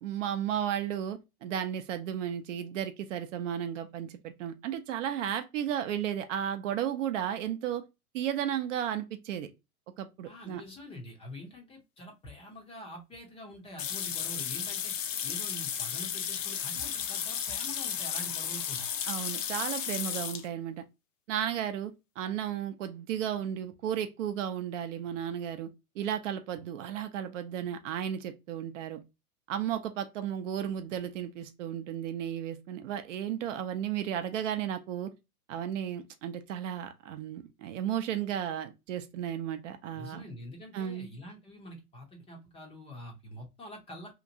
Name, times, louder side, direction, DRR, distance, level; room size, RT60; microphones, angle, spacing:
voice 1, 0.0-7.8 8.1-9.5 10.0-10.6 19.1-20.8 21.3-25.7 26.0-29.0 29.5-35.1 35.5-40.2 40.7-41.1, right 10 dB, 55° right, 0.6 m, -34 dB
voice 2, 10.2-14.9 15.2-18.9 39.9-44.2, left 1 dB, 15° left, 0.5 m, -46 dB
sound 1, 13.8-20.5, left 8 dB, 60° left, 0.6 m, -34 dB
2.9 x 2.4 x 2.6 m
hypercardioid pair, 110°, 45 cm